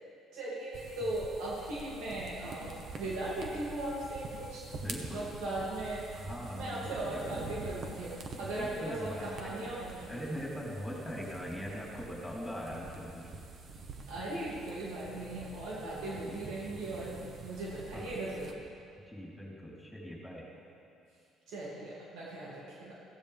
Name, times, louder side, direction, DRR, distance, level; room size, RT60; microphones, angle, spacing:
voice 1, 0.3-10.2 14.1-17.2 17.4-18.6 21.5-22.9, right 1 dB, 85° right, -6 dB, 2.7 m, -38 dB
sound 1, 0.7-18.5, right 3 dB, 50° right, 1.4 m, -46 dB
voice 2, 4.7-5.3 6.1-7.4 8.6-9.6 10.1-13.3 16.1-16.4 17.9-18.1 19.1-20.5, equal, 5° left, -4 dB, 4.1 m, -41 dB
16.5 x 16.0 x 3.6 m, 2.5 s
cardioid pair, 115°, 0 cm